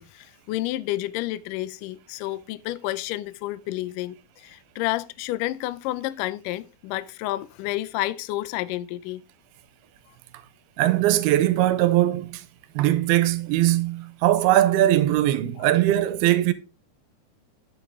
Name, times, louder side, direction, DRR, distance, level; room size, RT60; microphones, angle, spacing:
voice 1, 0.0-9.2 15.6-15.7, left 16 dB, 90° left, 1.9 m, -30 dB
voice 2, 10.8-12.4 12.7-16.5, right 14 dB, 80° right, 2.6 m, -20 dB
10.0 x 7.3 x 3.6 m
omnidirectional pair, 4.5 m